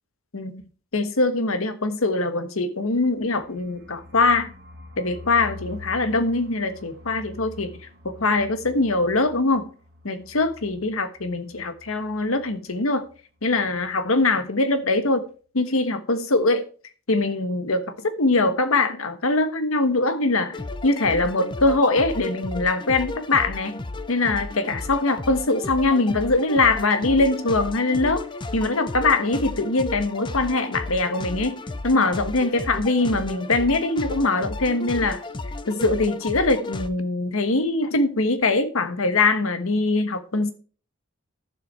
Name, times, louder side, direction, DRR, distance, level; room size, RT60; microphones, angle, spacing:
voice 1, 0.9-4.5 5.0-7.8 8.0-9.7 10.0-13.1 13.4-15.3 15.5-16.6 17.1-23.8 24.1-28.3 28.5-35.2 35.7-40.5, left 3 dB, 90° left, 1.3 m, -22 dB
sound 1, 3.1-12.8 13.1-13.2 13.4-13.9, left 2 dB, 55° right, 1.8 m, -45 dB
sound 2, 20.5-36.9, left 2 dB, 25° left, 0.5 m, -34 dB
11.5 x 7.4 x 4.5 m
head